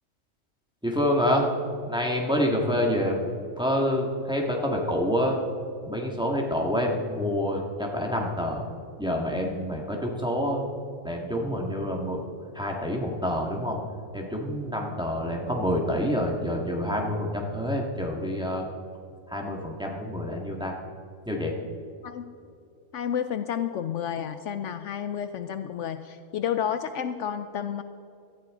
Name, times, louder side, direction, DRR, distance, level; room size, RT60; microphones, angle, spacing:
voice 1, 0.8-1.5 1.8-3.3 3.6-5.4 5.8-8.7 9.0-10.6 11.0-12.2 12.5-13.8 14.1-18.7 19.3-20.7 21.3-21.5, equal, 5° right, -1 dB, 1.8 m, -27 dB
voice 2, 22.9-27.8, left 9 dB, 70° left, 10 dB, 0.9 m, -31 dB
18.0 x 13.5 x 3.8 m, 2.5 s
omnidirectional pair, 1.4 m